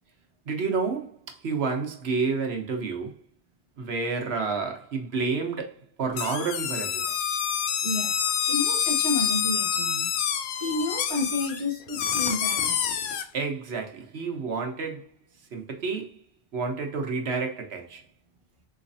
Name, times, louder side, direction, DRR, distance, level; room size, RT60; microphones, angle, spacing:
voice 1, 0.5-3.1 3.8-7.1 13.3-15.2 15.5-16.2 16.5-18.0, right 4 dB, 70° right, 1.1 m, -30 dB
sound 1, 6.1-13.2, left 8 dB, 75° left, 0.8 m, -27 dB
voice 2, 7.8-10.1 10.6-12.8, left 2 dB, 30° right, 0.8 m, -31 dB
4.0 x 3.1 x 2.6 m
omnidirectional pair, 1.1 m